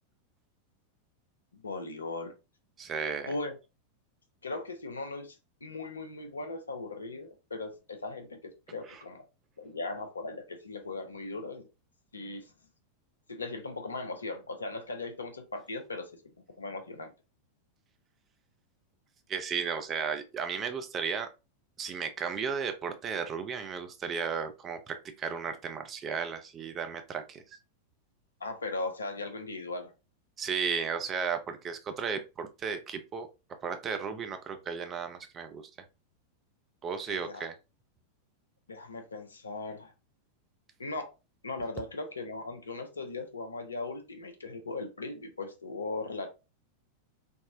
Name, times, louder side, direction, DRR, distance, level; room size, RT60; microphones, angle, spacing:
voice 1, 1.5-2.3 3.3-3.6 4.4-9.2 9.6-11.7 12.1-12.5 13.3-17.1 28.4-29.9 37.1-37.5 38.7-39.9 40.8-41.1 41.4-46.3, left 3 dB, 75° left, 6 dB, 0.5 m, -38 dB
voice 2, 2.8-3.3 8.9-9.0 19.3-21.3 21.8-27.4 30.4-33.3 33.6-35.6 36.8-37.5, right 6 dB, 25° right, 7 dB, 0.4 m, -34 dB
3.5 x 2.0 x 2.5 m, 0.28 s
figure-of-eight pair, 90°, 0 cm